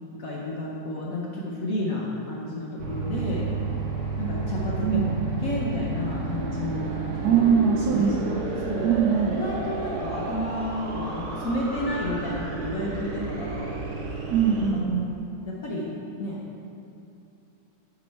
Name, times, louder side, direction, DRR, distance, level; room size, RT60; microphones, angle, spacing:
voice 1, 0.1-3.5 4.2-5.0 5.4-7.4 7.9-8.2 8.6-9.1 9.3-13.7 15.5-15.9 16.2-16.4, left 1 dB, 60° left, -4 dB, 0.9 m, -31 dB
sound 1, 2.8-14.7, right 3 dB, 60° right, 1.2 m, -31 dB
voice 2, 4.8-5.2 7.2-8.4 8.8-9.4 14.3-15.1, right 7 dB, 80° right, -1 dB, 0.9 m, -22 dB
7.0 x 5.0 x 4.5 m, 2.7 s
omnidirectional pair, 2.2 m